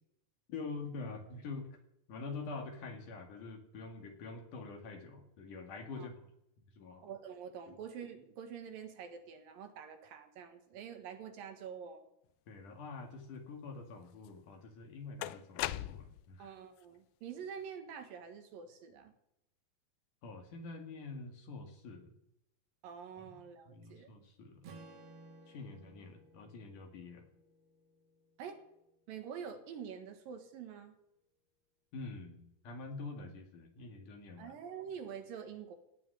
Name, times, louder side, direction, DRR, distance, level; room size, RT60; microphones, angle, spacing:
voice 1, 0.5-1.8 2.1-6.2 6.7-7.1 7.7-7.8 12.5-16.5 20.2-22.1 23.2-23.3 23.7-24.6 25.5-27.2 31.9-34.5, left 3 dB, 60° left, 4 dB, 3.3 m, -46 dB
voice 2, 7.0-12.1 16.4-19.1 22.8-24.1 28.4-28.6 29.1-31.0 34.4-35.7, right 7 dB, 70° right, 6 dB, 3.1 m, -46 dB
sound 1, 14.2-14.3 15.2-16.3, left 15 dB, 80° left, 2.2 m, -38 dB
Strum, 24.6-28.9, right 3 dB, 85° right, 4.4 m, -57 dB
17.5 x 6.2 x 10.0 m, 0.81 s
omnidirectional pair, 4.4 m